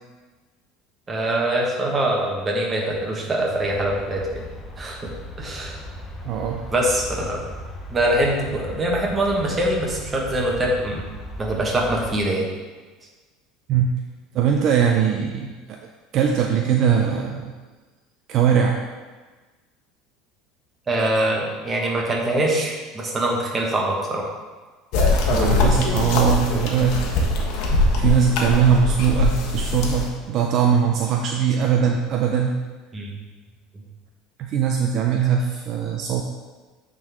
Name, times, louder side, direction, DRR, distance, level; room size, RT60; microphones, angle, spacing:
voice 1, 1.1-4.5 4.8-5.8 6.7-7.4 7.9-11.1 11.4-12.5 20.9-24.2 32.9-33.1, right 1 dB, 20° right, -1 dB, 1.4 m, -23 dB
sound 1, 3.5-12.2, equal, 20° left, 1.0 m, -37 dB
voice 2, 6.2-6.6 13.7-13.9 14.3-15.8 16.1-17.5 18.3-18.8 25.3-27.6 27.9-32.6 34.4-36.2, right 7 dB, 50° right, 2 dB, 0.5 m, -21 dB
sound 2, 24.9-30.1, left 3 dB, 65° left, 1.2 m, -21 dB
8.9 x 4.0 x 3.7 m, 1.3 s
supercardioid pair, 125°, 0 cm